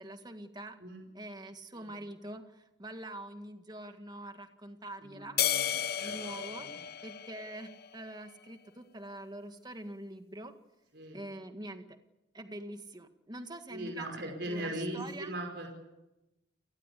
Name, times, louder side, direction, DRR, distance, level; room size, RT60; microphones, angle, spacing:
voice 1, 0.0-0.8 1.1-5.4 6.0-6.7 7.0-10.5 11.1-12.0 12.3-15.3, right 1 dB, 20° right, 7 dB, 1.8 m, -45 dB
voice 2, 5.0-5.7 6.0-6.7 10.9-11.2 13.7-15.7, right 1 dB, 60° right, 2 dB, 5.5 m, -40 dB
sound 1, 5.4-8.0, left 10 dB, 55° left, 0.9 m, -33 dB
29.5 x 18.5 x 8.4 m, 0.97 s
head